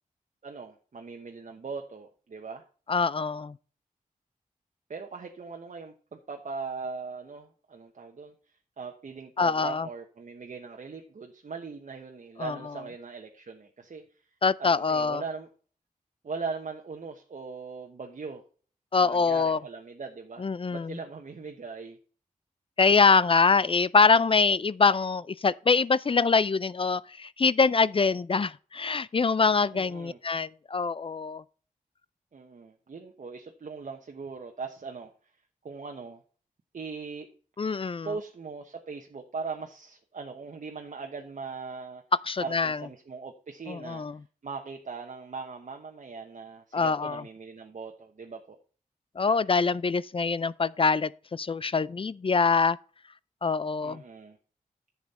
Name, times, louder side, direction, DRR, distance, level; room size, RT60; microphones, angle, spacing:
voice 1, 0.4-2.6 4.9-8.3 8.8-14.2 14.6-15.5 16.2-18.4 19.0-22.0 29.7-30.2 32.3-35.1 35.6-36.2 36.7-37.3 38.0-42.0 42.4-44.0 44.4-48.6 53.8-54.4, right 4 dB, 60° right, 1.1 m, -40 dB
voice 2, 2.9-3.5 9.4-9.9 12.4-12.6 14.4-15.2 18.9-19.6 20.4-21.0 22.8-31.4 37.6-38.1 42.3-42.8 43.7-44.2 46.7-47.2 49.2-52.8 53.4-54.0, left 4 dB, 40° left, 0.4 m, -24 dB
10.5 x 7.3 x 4.2 m
wide cardioid pair, 70°, 14 cm